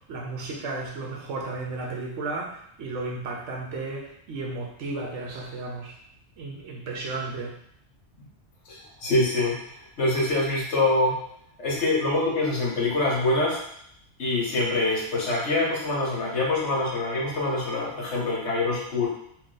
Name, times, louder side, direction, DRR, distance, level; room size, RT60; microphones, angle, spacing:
voice 1, 0.1-5.9 6.4-7.6, right 3 dB, 80° right, 0 dB, 1.1 m, -34 dB
voice 2, 8.7-9.6 10.0-11.2 11.6-13.6 14.2-19.1, left 2 dB, 70° left, -3 dB, 1.3 m, -25 dB
2.9 x 2.9 x 3.8 m, 0.69 s
omnidirectional pair, 1.2 m